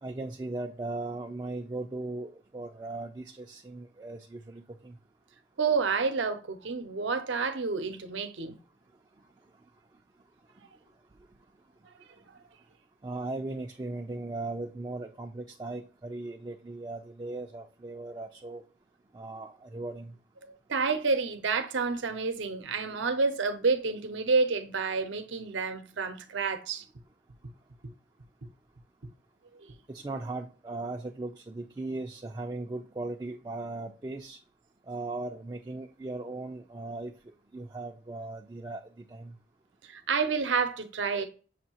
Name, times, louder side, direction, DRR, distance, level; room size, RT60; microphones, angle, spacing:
voice 1, 0.0-5.0 13.0-18.6 19.1-20.2 29.9-34.4 34.9-37.1 37.5-39.4, right 2 dB, 20° right, 0.3 m, -38 dB
voice 2, 5.6-8.5 20.5-26.8 39.8-41.2, right 4 dB, 80° right, 0.7 m, -29 dB
6.5 x 2.7 x 2.8 m
head